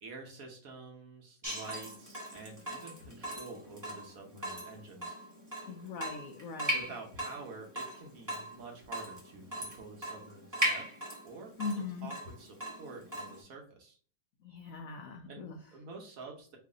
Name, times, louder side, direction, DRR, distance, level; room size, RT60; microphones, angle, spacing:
voice 1, 0.0-5.2 6.7-10.9 11.2-14.0 15.3-16.6, right 3 dB, 60° right, 2 dB, 1.1 m, -48 dB
Water tap faucet / Drip, 1.4-13.4, equal, 15° right, 0.8 m, -39 dB
voice 2, 5.7-6.8 11.6-12.1 14.4-15.6, left 4 dB, 85° left, 4 dB, 0.7 m, -40 dB
3.1 x 2.5 x 3.7 m, 0.43 s
omnidirectional pair, 2.0 m